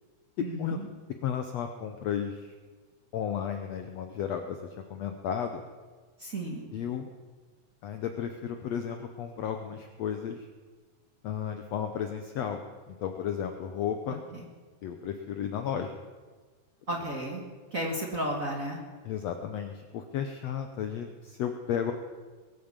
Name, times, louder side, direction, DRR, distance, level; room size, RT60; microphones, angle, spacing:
voice 1, 0.4-0.8 6.2-6.6 14.3-14.4 16.9-17.4 17.7-18.8, right 1 dB, 30° right, 0 dB, 1.6 m, -33 dB
voice 2, 1.2-2.5 3.1-4.6 4.9-5.6 6.7-7.1 7.8-10.5 11.2-12.6 12.9-14.2 14.8-16.0 17.0-17.1 19.0-21.9, left 8 dB, 70° left, 6 dB, 1.6 m, -33 dB
21.5 x 8.7 x 7.4 m, 1.4 s
omnidirectional pair, 3.9 m